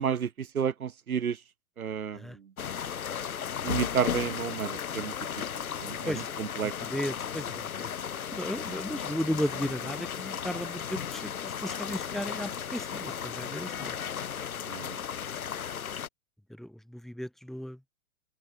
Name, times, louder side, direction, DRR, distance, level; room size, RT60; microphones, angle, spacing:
voice 1, 0.0-1.4 1.8-2.3 3.6-5.1 5.8-6.7 14.7-15.0, right 7 dB, 85° right, 3.9 m, -31 dB
sound 1, 2.6-16.1, left 8 dB, 90° left, 2.1 m, -35 dB
voice 2, 5.8-7.9 8.3-14.0 16.5-17.8, equal, ahead, 4.8 m, -35 dB
open air
hypercardioid pair, 135°, 42 cm